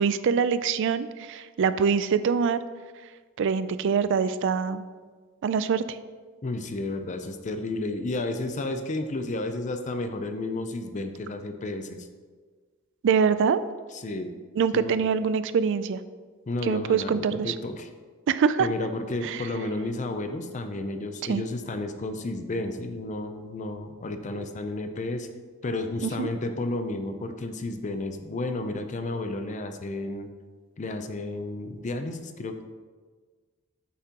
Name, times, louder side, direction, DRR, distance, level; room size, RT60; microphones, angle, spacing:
voice 1, 0.0-2.6 3.4-4.8 5.4-6.0 13.0-13.6 14.6-16.0 16.6-17.5 18.3-18.7 19.2-19.4 21.2-21.4 24.4-24.5 26.0-26.3, right 6 dB, 60° right, 13 dB, 0.3 m, -24 dB
voice 2, 6.4-12.1 13.9-14.3 14.7-14.9 16.5-17.9 18.6-25.3 25.6-30.3 30.8-32.6, left 2 dB, 35° left, 7 dB, 0.5 m, -32 dB
8.2 x 5.8 x 2.9 m, 1.5 s
head